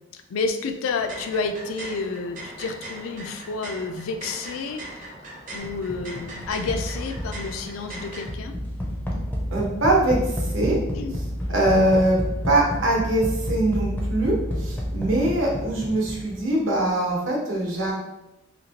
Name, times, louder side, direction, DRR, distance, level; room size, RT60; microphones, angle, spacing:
voice 1, 0.1-5.1 5.5-8.5 10.9-11.1, left 4 dB, 85° left, 6 dB, 0.4 m, -30 dB
sound 1, 0.9-8.2, right 1 dB, 40° right, 0.6 m, -40 dB
sound 2, 5.6-16.5, equal, 10° left, 0.4 m, -30 dB
voice 2, 9.5-10.8 11.5-12.2 12.5-17.9, right 1 dB, 65° right, -2 dB, 0.8 m, -22 dB
3.0 x 2.7 x 2.8 m, 0.95 s
head